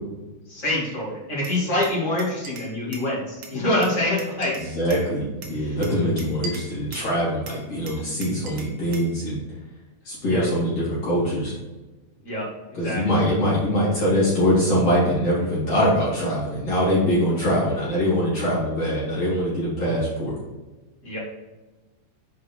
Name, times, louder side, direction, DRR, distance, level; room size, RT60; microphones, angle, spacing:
voice 1, 0.5-4.5 5.6-5.8 10.2-10.4 12.2-12.4 12.7-13.0 21.0-21.2, left 1 dB, 25° left, -6 dB, 2.4 m, -25 dB
Glass, 1.4-3.1 3.4-5.1 5.4-7.1 7.5-9.1, right 3 dB, 65° right, 2.1 m, -41 dB
voice 2, 4.6-9.4 10.1-11.5 12.7-20.4, equal, 50° left, -8 dB, 3.6 m, -23 dB
6.7 x 4.8 x 4.5 m, 1.1 s
omnidirectional pair, 3.7 m